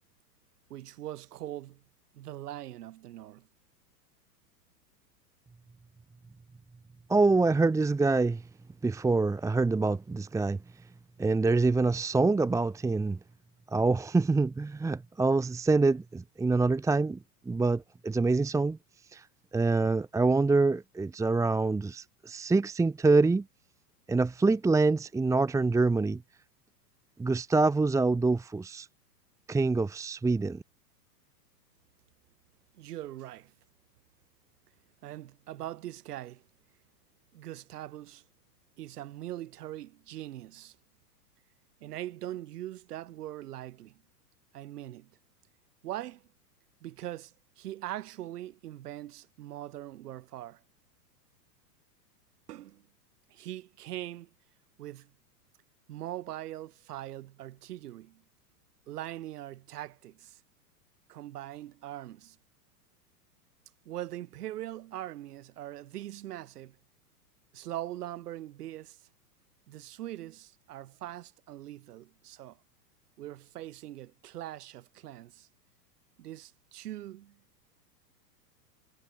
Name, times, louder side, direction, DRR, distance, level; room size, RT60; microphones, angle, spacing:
voice 1, 0.7-1.8 2.1-3.5 32.7-33.5 35.0-36.4 37.3-38.2 38.8-40.8 41.8-44.0 44.5-45.1 45.8-46.2 46.8-50.6 52.5-52.9 53.3-54.3 54.8-55.1 55.9-58.2 58.9-60.4 61.1-62.4 63.8-66.8 67.5-69.0 69.7-72.6 73.2-75.5 76.2-77.4, right 14 dB, 70° right, 4.8 m, -41 dB
voice 2, 7.1-8.4 8.8-10.6 11.2-13.2 13.7-17.2 17.5-18.8 19.1-19.3 19.5-23.4 24.1-26.2 27.2-28.9 29.5-30.6, right 3 dB, 5° right, 1.1 m, -25 dB
hypercardioid pair, 130°, 48 cm